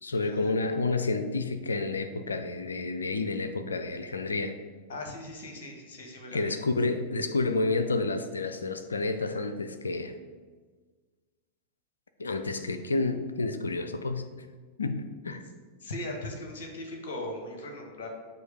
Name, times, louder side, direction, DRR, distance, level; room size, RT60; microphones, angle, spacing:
voice 1, 0.0-4.5 6.3-10.1 12.2-14.2 14.8-15.4, left 3 dB, 75° left, 9 dB, 0.4 m, -30 dB
voice 2, 4.9-6.5 15.8-18.1, left 1 dB, 55° left, 2 dB, 1.2 m, -39 dB
7.8 x 2.7 x 5.0 m, 1.5 s
figure-of-eight pair, 90°, 0 cm